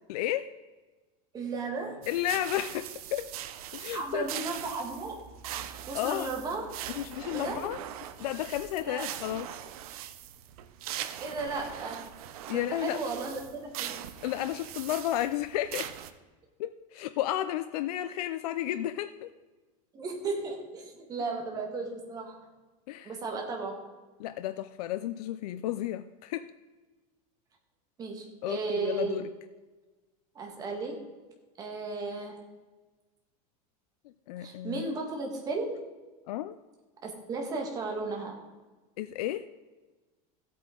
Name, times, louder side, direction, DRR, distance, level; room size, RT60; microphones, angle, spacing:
voice 1, 0.1-0.5 2.1-3.3 3.7-4.2 5.9-6.3 7.0-7.8 8.2-9.5 12.5-13.0 14.2-15.9 16.6-19.3 22.9-23.1 24.2-26.5 28.4-29.3 34.3-34.8 36.3-36.6 39.0-39.5, left 13 dB, 80° left, 11 dB, 0.5 m, -32 dB
voice 2, 1.3-2.0 3.9-5.2 5.9-6.7 7.3-7.7 8.8-9.0 11.2-12.1 12.5-14.1 19.9-22.4 23.0-23.9 28.0-29.2 30.4-31.1 31.6-32.5 34.4-35.9 37.0-38.4, right 3 dB, 20° right, 2 dB, 1.6 m, -35 dB
sound 1, 2.0-16.1, right 11 dB, 70° right, 0.8 m, -41 dB
14.5 x 8.5 x 3.8 m, 1.3 s
supercardioid pair, 175°, 19 cm